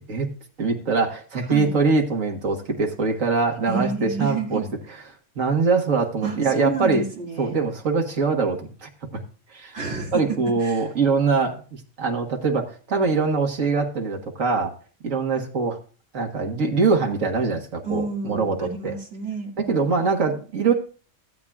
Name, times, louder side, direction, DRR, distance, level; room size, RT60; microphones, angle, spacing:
voice 1, 0.6-4.6 5.4-7.0 7.4-8.9 9.5-9.7 10.1-14.7 15.0-15.8 16.1-18.9 19.6-20.7, right 4 dB, 75° right, 2 dB, 2.0 m, -23 dB
voice 2, 3.7-4.7 6.2-7.6 9.7-10.9 17.8-20.1, right 4 dB, 55° right, 0 dB, 2.6 m, -30 dB
17.0 x 8.5 x 2.4 m, 0.39 s
omnidirectional pair, 1.4 m